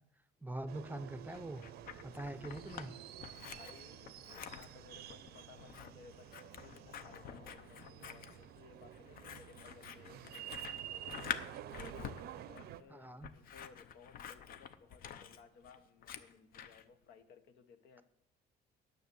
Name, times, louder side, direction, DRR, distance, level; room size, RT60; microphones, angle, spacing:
voice 1, 0.4-1.6 2.0-2.9 12.9-13.3, right 2 dB, 10° right, 12 dB, 0.5 m, -43 dB
sound 1, 0.7-12.8, right 12 dB, 70° right, 0.6 m, -50 dB
Scissors, 1.3-2.9 3.2-16.8, left 8 dB, 60° left, 0.7 m, -48 dB
voice 2, 3.3-11.4 11.9-18.0, left 6 dB, 80° left, 9 dB, 1.0 m, -60 dB
9.3 x 6.6 x 6.9 m, 0.75 s
cardioid pair, 110°, 17 cm